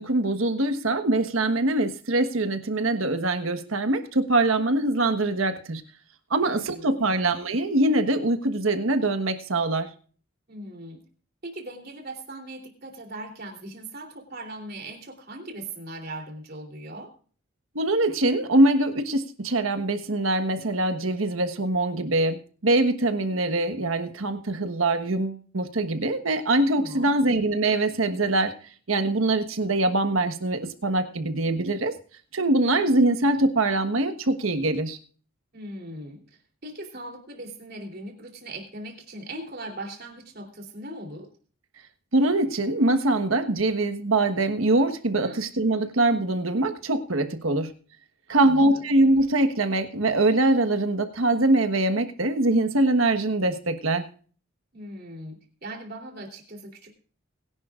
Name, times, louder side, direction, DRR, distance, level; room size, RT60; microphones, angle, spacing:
voice 1, 0.0-5.8 6.3-9.9 17.7-28.5 28.9-31.9 32.3-35.0 42.1-47.7 48.3-54.0, right 2 dB, 75° right, 9 dB, 1.4 m, -23 dB
voice 2, 6.4-7.3 10.5-11.0 11.4-17.1 26.7-27.2 35.5-36.2 36.6-41.3 45.2-45.4 48.3-48.8 54.7-56.9, right 1 dB, 50° right, 3 dB, 3.3 m, -39 dB
22.0 x 11.0 x 2.5 m, 0.42 s
head